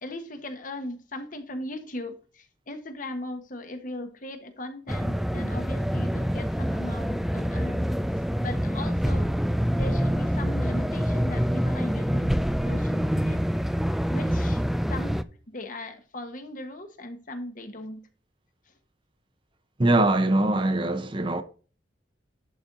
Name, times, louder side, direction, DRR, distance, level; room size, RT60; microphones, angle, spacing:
voice 1, 0.0-7.9 8.4-9.3 9.7-12.3 12.6-13.4 14.1-14.6 14.9-18.1, left 1 dB, 45° left, 1.4 m, -38 dB
sound 1, 4.9-15.2, equal, ahead, 0.4 m, -26 dB
voice 2, 19.8-21.4, right 2 dB, 25° right, 0.7 m, -22 dB
11.0 x 4.4 x 3.9 m
head